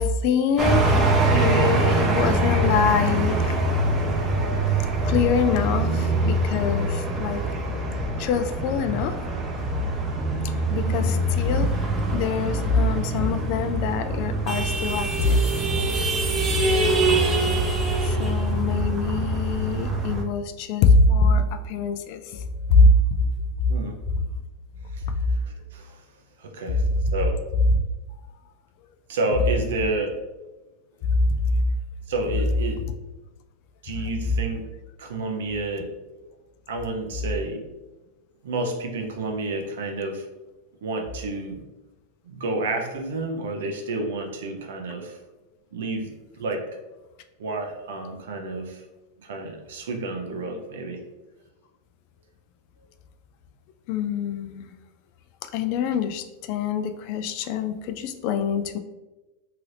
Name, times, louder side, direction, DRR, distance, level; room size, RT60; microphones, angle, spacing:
voice 1, 0.0-3.6 5.0-7.4 8.2-9.1 10.7-11.7 12.1-15.4 15.7-16.0 18.0-22.2 22.7-23.3 26.7-26.8 27.7-27.8 31.1-31.4 53.9-54.7 55.5-58.8, left 3 dB, 55° left, 9 dB, 0.3 m, -23 dB
sound 1, 0.6-20.2, right 2 dB, 25° right, 0.6 m, -24 dB
voice 2, 26.4-26.8 27.1-27.4 29.1-30.2 32.1-32.8 33.8-34.6 35.0-35.9 36.2-36.3 36.7-37.6 38.4-40.3 40.8-41.6 42.3-45.2 45.7-46.1 46.4-46.6 47.4-48.8 49.2-51.0, right 2 dB, 80° right, 3 dB, 0.6 m, -30 dB
2.8 x 2.5 x 3.2 m, 1.1 s
hypercardioid pair, 115°, 0 cm